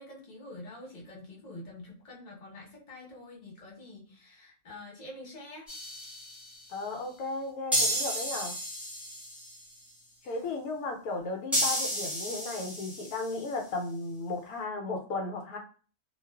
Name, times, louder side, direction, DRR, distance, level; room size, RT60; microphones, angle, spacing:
voice 1, 0.0-5.7 10.2-10.4, left 1 dB, 35° left, -3 dB, 0.8 m, -46 dB
sound 1, 5.7-6.6 7.7-9.6 11.5-13.4, equal, ahead, 0.8 m, -32 dB
voice 2, 6.7-8.6 10.3-15.6, left 3 dB, 80° left, 2 dB, 1.0 m, -35 dB
2.4 x 2.3 x 2.2 m, 0.39 s
omnidirectional pair, 1.5 m